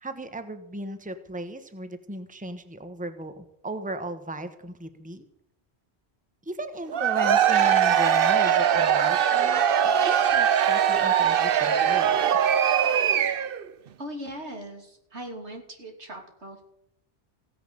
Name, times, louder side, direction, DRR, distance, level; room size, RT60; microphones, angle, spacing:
voice 1, 0.0-5.3 6.4-9.6 10.0-12.2, right 1 dB, 5° right, 9 dB, 1.2 m, -36 dB
Cheering / Crowd, 6.9-13.6, right 8 dB, 60° right, 0.9 m, -21 dB
voice 2, 14.0-16.6, equal, 85° right, 3 dB, 3.4 m, -39 dB
16.0 x 10.5 x 6.9 m, 0.74 s
omnidirectional pair, 1.1 m